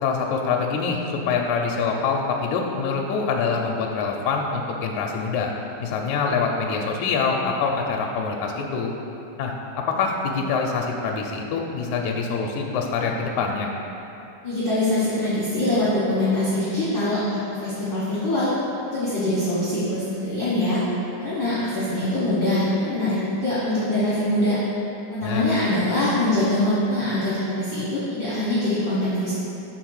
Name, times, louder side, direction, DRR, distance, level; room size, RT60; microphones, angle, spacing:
voice 1, 0.0-1.0 1.3-5.5 5.8-8.9 9.4-13.7 25.2-25.5, left 5 dB, 80° left, 1 dB, 1.8 m, -25 dB
voice 2, 14.4-18.5 18.9-20.8 21.2-24.6 25.1-29.3, left 1 dB, 55° left, -11 dB, 1.4 m, -23 dB
5.7 x 4.2 x 6.2 m, 2.8 s
omnidirectional pair, 3.7 m